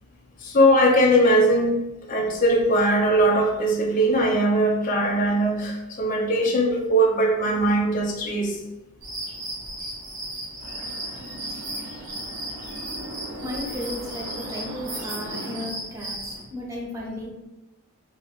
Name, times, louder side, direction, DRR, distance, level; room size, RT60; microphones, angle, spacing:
voice 1, 0.4-1.8 2.1-8.6, right 1 dB, 35° left, 0 dB, 0.4 m, -20 dB
sound 1, 9.0-16.4, right 1 dB, 55° right, 1.0 m, -35 dB
sound 2, 10.6-15.6, right 2 dB, 85° right, 0.5 m, -39 dB
voice 2, 13.4-17.3, left 1 dB, 15° right, -3 dB, 0.6 m, -34 dB
3.0 x 2.4 x 3.0 m, 0.99 s
head